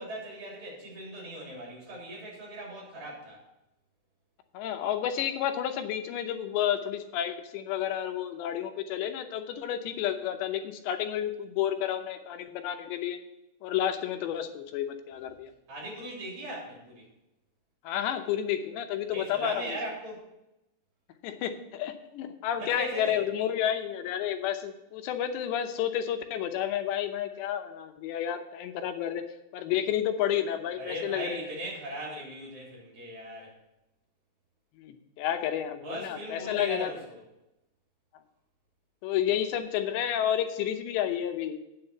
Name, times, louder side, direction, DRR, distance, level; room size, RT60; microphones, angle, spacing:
voice 1, 0.0-3.4 15.7-17.0 19.1-20.2 22.6-23.2 30.8-33.5 35.8-37.2, right 1 dB, 45° right, -3 dB, 4.4 m, -39 dB
voice 2, 4.5-13.2 13.6-15.5 17.8-19.8 21.2-29.2 29.5-31.4 34.8-36.9 39.0-41.6, left 10 dB, 90° left, 7 dB, 3.1 m, -31 dB
8.9 x 7.3 x 5.6 m, 0.91 s
omnidirectional pair, 4.9 m